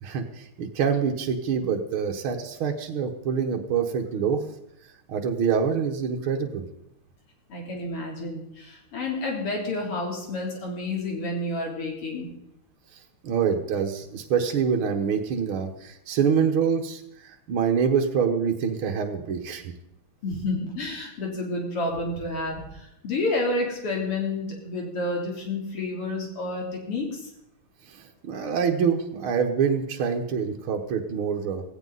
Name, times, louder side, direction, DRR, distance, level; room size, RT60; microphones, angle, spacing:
voice 1, 0.0-4.4 5.1-6.7 13.2-19.6 27.9-31.6, right 6 dB, 70° right, 2 dB, 2.1 m, -26 dB
voice 2, 7.5-12.3 20.2-27.3, left 2 dB, 90° left, -1 dB, 4.3 m, -30 dB
17.0 x 16.5 x 4.1 m, 0.78 s
omnidirectional pair, 2.4 m